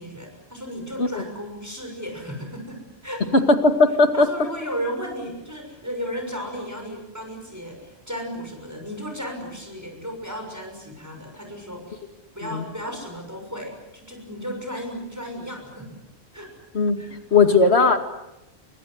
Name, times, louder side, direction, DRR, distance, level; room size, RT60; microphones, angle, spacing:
voice 1, 0.0-3.3 4.1-12.0 12.3-16.0 16.3-16.5 17.0-17.5, equal, 15° right, 2 dB, 6.4 m, -34 dB
voice 2, 3.3-4.3 12.4-12.7 16.7-18.0, left 3 dB, 70° left, 7 dB, 2.6 m, -18 dB
27.5 x 24.5 x 8.0 m, 0.94 s
omnidirectional pair, 1.1 m